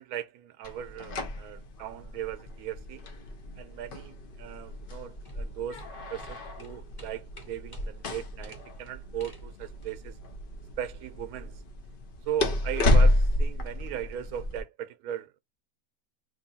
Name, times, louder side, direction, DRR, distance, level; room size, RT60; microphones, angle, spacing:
voice 1, 0.0-3.1 3.6-5.8 6.1-10.2 10.8-11.6 12.3-15.4, right 10 dB, 80° right, 1.0 m, -38 dB
sound 1, 0.6-14.6, left 1 dB, 50° left, 0.7 m, -30 dB
sound 2, 4.7-10.1, equal, 15° left, 1.3 m, -53 dB
2.8 x 2.7 x 4.0 m
omnidirectional pair, 1.6 m